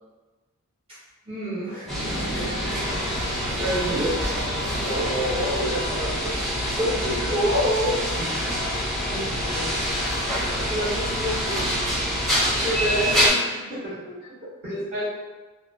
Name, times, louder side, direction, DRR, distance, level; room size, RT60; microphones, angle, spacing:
voice 1, 1.3-2.2 3.6-4.2 6.8-8.0 8.4-8.5 10.3-12.0 12.6-13.8 14.7-15.1, equal, 25° right, -13 dB, 0.8 m, -27 dB
sound 1, 1.9-13.3, equal, ahead, 0.5 m, -26 dB
voice 2, 2.2-2.5 3.8-3.9 4.8-7.1 8.2-8.3 9.1-9.7 13.8-13.9 14.4-14.7, equal, 50° right, -10 dB, 1.2 m, -31 dB
2.4 x 2.2 x 2.4 m, 1.2 s
head